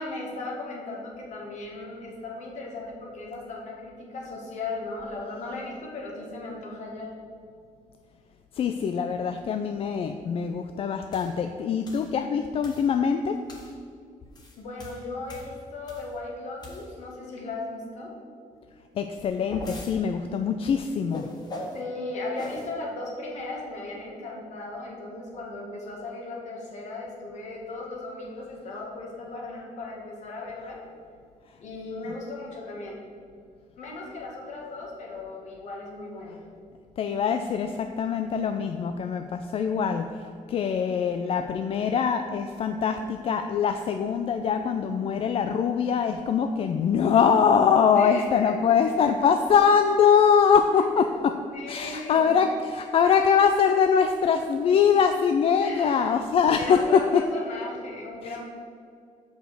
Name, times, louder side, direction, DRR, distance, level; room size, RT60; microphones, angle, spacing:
voice 1, 0.0-7.1 14.6-18.1 21.7-30.8 31.6-33.0 33.8-36.4 47.9-48.6 51.1-51.2 51.5-52.3 55.6-56.1 56.6-58.5, left 2 dB, 65° left, -1 dB, 1.8 m, -37 dB
voice 2, 8.5-13.4 19.0-21.3 32.0-32.2 36.3-36.4 37.0-51.4 51.7-57.2 58.2-58.4, left 6 dB, 45° left, 6 dB, 0.4 m, -23 dB
sound 1, 11.1-11.3 11.9-12.1 12.6-12.9 13.5-13.7 14.2-16.2 16.6-17.1 19.0-20.0 21.1-21.8 22.4-22.7, left 1 dB, 30° left, 1.3 m, -41 dB
6.9 x 5.2 x 6.1 m, 2.2 s
cardioid pair, 145°, 13 cm